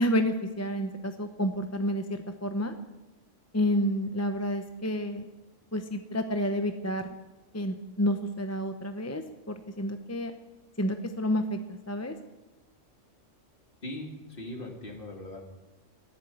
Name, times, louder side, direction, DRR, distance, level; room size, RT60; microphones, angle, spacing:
voice 1, 0.0-2.7 3.5-5.3 5.7-7.0 7.5-10.3 10.8-12.1, equal, 15° left, 7 dB, 0.7 m, -29 dB
voice 2, 13.8-15.4, left 1 dB, 45° left, 1 dB, 2.9 m, -40 dB
14.0 x 11.0 x 9.2 m, 1.1 s
omnidirectional pair, 1.3 m